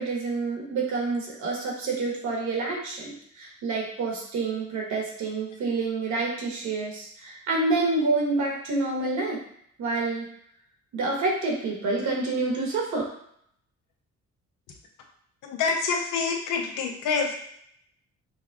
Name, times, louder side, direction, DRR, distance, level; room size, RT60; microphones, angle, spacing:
voice 1, 0.0-9.4 9.8-10.3 10.9-13.1, right 3 dB, 70° right, -1 dB, 1.2 m, -28 dB
voice 2, 15.4-17.3, left 5 dB, 85° left, 2 dB, 0.7 m, -27 dB
5.1 x 2.1 x 2.3 m, 0.69 s
cardioid pair, 90°, 30 cm